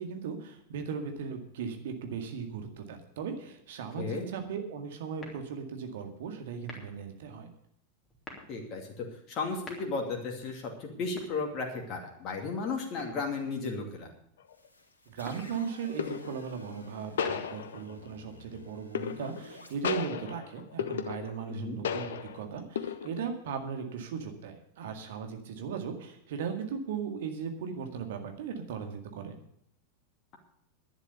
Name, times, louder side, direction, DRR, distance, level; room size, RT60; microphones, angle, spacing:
voice 1, 0.0-7.5 15.1-29.4, right 6 dB, 55° right, 5 dB, 2.0 m, -37 dB
sound 1, 5.2-5.8 6.6-7.1 8.0-8.6 9.4-10.2 11.0-11.9 13.0-13.6 15.0-15.6 16.9-17.8, left 2 dB, 15° left, 3.2 m, -49 dB
voice 2, 8.5-14.1 21.5-21.8, left 4 dB, 35° left, 1 dB, 2.5 m, -34 dB
sound 2, 14.4-14.7 16.0-16.5 17.2-18.1 18.9-19.5 19.8-21.5 21.8-22.4 22.8-23.3, left 7 dB, 60° left, 0.9 m, -34 dB
sound 3, 14.5-19.7, left 2 dB, 80° left, 2.3 m, -52 dB
11.0 x 10.5 x 6.7 m, 0.72 s
figure-of-eight pair, 90°, 0 cm